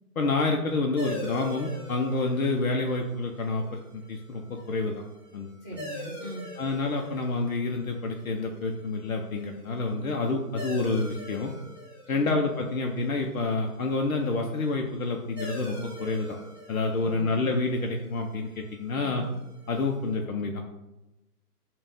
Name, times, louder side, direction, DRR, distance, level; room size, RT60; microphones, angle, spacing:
voice 1, 0.2-5.0 5.3-5.5 6.6-11.5 12.1-16.4 16.7-19.2 19.7-20.6, left 3 dB, 60° left, 2 dB, 0.6 m, -28 dB
sound 1, 1.0-20.1, equal, 10° right, 0.9 m, -44 dB
voice 2, 5.6-6.5 12.1-12.4 16.9-17.4 18.9-19.3, equal, 20° left, -4 dB, 1.5 m, -40 dB
5.4 x 2.4 x 3.5 m, 0.98 s
hypercardioid pair, 170°, 47 cm